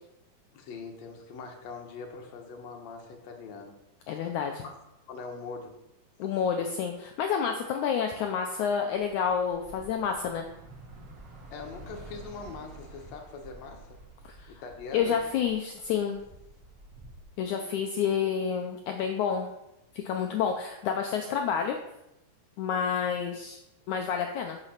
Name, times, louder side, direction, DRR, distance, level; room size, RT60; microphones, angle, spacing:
voice 1, 0.5-3.8 4.1-4.3 4.6-4.7 5.1-5.8 11.5-14.0 14.5-15.2, left 4 dB, 60° left, 2 dB, 2.1 m, -42 dB
voice 2, 4.1-4.6 6.2-10.5 14.2-14.5 14.9-16.2 17.4-19.5 19.9-21.8 22.6-23.6 23.9-24.6, left 7 dB, 90° left, 4 dB, 1.7 m, -29 dB
Bus / Traffic noise roadway noise, 8.4-17.2, right 2 dB, 50° right, 2.0 m, -50 dB
8.0 x 6.9 x 5.8 m, 0.87 s
omnidirectional pair, 4.3 m